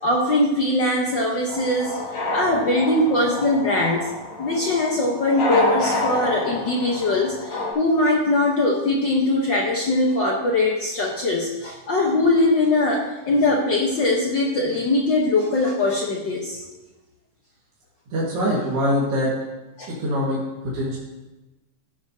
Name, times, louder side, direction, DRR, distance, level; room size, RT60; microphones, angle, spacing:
voice 1, 0.0-2.0 2.3-4.1 4.4-16.6 19.8-19.9, left 2 dB, 65° left, -1 dB, 1.1 m, -21 dB
sound 1, 1.5-7.7, left 1 dB, 85° left, 3.9 m, -28 dB
voice 2, 18.1-19.3 20.0-20.4 20.7-21.0, equal, 50° right, -6 dB, 2.6 m, -23 dB
14.0 x 10.5 x 2.8 m, 1.1 s
omnidirectional pair, 3.6 m